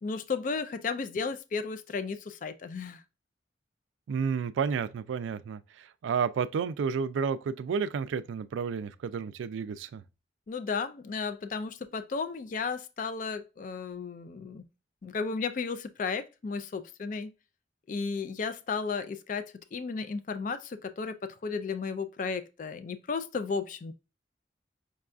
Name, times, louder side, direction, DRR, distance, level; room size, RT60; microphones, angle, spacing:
voice 1, 0.0-3.0 10.5-14.6 15.0-17.3 17.9-23.9, left 5 dB, 45° left, 0.3 m, -34 dB
voice 2, 4.1-10.0, right 6 dB, 85° right, 0.3 m, -31 dB
5.3 x 2.3 x 2.4 m
head